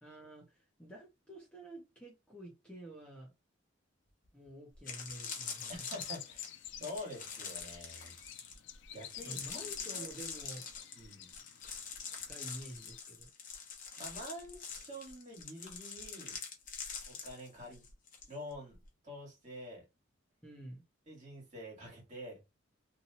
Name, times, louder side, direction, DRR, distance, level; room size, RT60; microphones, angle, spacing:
voice 1, 0.0-3.3 4.3-5.8 9.2-10.6 12.1-13.3 20.4-20.8, right 1 dB, 5° left, 0.9 m, -49 dB
sound 1, 4.2-4.3 4.7-18.3 18.5-18.9, left 6 dB, 45° left, 0.8 m, -45 dB
sound 2, 5.1-13.0, left 12 dB, 65° left, 0.3 m, -52 dB
voice 2, 5.7-6.5 6.8-8.1 8.9-10.1 10.9-11.3 14.0-16.4 17.1-17.8 18.3-18.8 19.0-19.8 21.1-22.4, equal, 40° right, 1.8 m, -47 dB
2.9 x 2.7 x 2.7 m
head